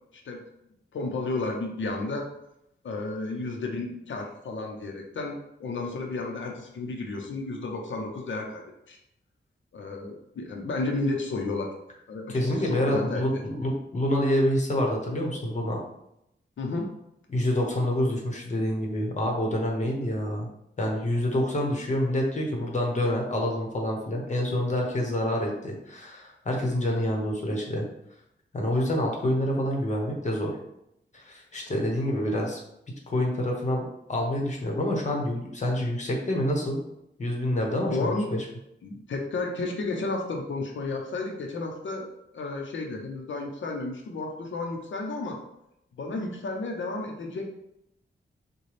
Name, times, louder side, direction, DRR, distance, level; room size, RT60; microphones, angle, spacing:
voice 1, 0.9-2.3 2.8-9.0 9.7-11.7 12.1-13.2 16.6-16.9 37.9-38.3 38.8-42.1 42.3-45.4 46.0-47.5, left 3 dB, 85° left, 1 dB, 0.7 m, -32 dB
voice 2, 12.3-15.8 17.3-20.5 20.8-27.8 28.5-30.5 31.1-32.6 33.1-36.8 37.2-38.4, left 1 dB, 40° left, -1 dB, 1.1 m, -27 dB
6.6 x 2.3 x 3.3 m, 0.81 s
wide cardioid pair, 145°, 19 cm